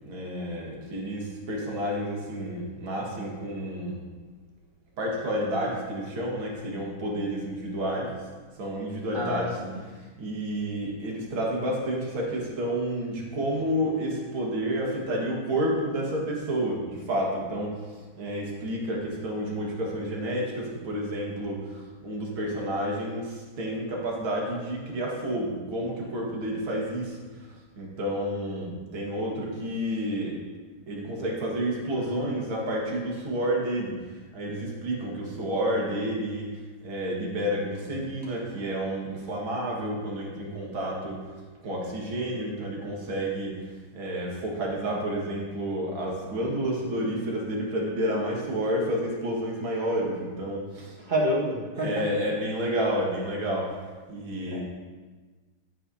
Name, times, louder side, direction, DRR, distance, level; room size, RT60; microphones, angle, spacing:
voice 1, 0.0-4.0 5.0-8.1 8.6-9.4 9.9-30.4 30.9-36.5 36.8-51.0 51.8-53.8 54.1-54.6, equal, 70° right, -2 dB, 2.5 m, -30 dB
voice 2, 9.1-9.7 31.9-32.4 51.0-52.0 54.5-54.6, equal, 25° right, -4 dB, 1.6 m, -29 dB
11.0 x 9.1 x 2.8 m, 1.3 s
omnidirectional pair, 2.3 m